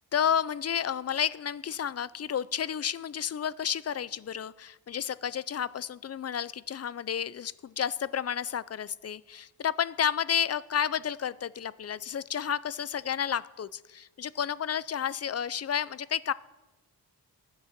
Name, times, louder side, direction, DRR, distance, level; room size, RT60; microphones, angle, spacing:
voice 1, 0.1-16.3, left 8 dB, 40° left, 19 dB, 0.5 m, -31 dB
14.0 x 9.4 x 7.4 m, 1.1 s
cardioid pair, 85°, 40 cm